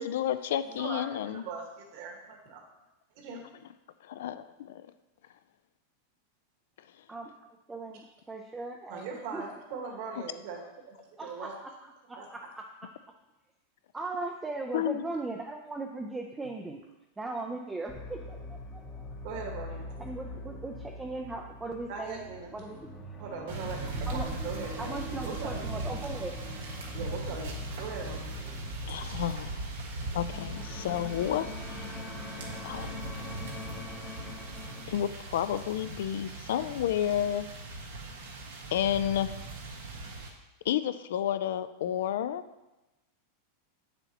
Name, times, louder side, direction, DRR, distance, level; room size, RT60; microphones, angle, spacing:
voice 1, 0.0-1.4 4.0-4.9 14.7-15.0 28.9-29.7 30.1-32.0 32.6-33.5 34.9-37.5 38.7-39.3 40.6-42.4, left 10 dB, 75° left, 13 dB, 0.4 m, -31 dB
voice 2, 0.6-2.6 3.1-3.4 8.9-11.5 12.1-12.3 19.2-20.1 21.9-22.5 23.2-25.7 26.9-28.3, right 4 dB, 55° right, 0 dB, 1.6 m, -40 dB
voice 3, 7.1-9.4 11.2-12.6 13.9-16.8 17.2-18.8 20.0-22.2 22.5-22.9 24.1-24.3 24.8-26.3, right 3 dB, 10° right, 2 dB, 0.4 m, -38 dB
sound 1, 17.9-34.9, left 2 dB, 20° left, 0.8 m, -43 dB
sound 2, 23.5-40.3, right 2 dB, 85° right, 1.6 m, -39 dB
7.2 x 6.9 x 2.9 m, 1.0 s
supercardioid pair, 150°, 0 cm